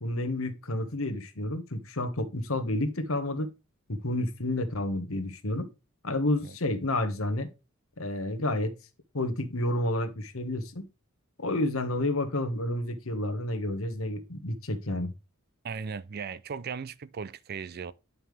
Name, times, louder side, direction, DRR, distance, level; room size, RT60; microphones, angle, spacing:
voice 1, 0.0-3.5 3.9-5.7 6.0-7.5 8.0-8.7 9.1-10.8 11.4-15.1, left 1 dB, 75° left, 1.5 m, -30 dB
voice 2, 15.6-17.9, right 6 dB, 50° right, 0.5 m, -37 dB
9.5 x 5.7 x 3.4 m
head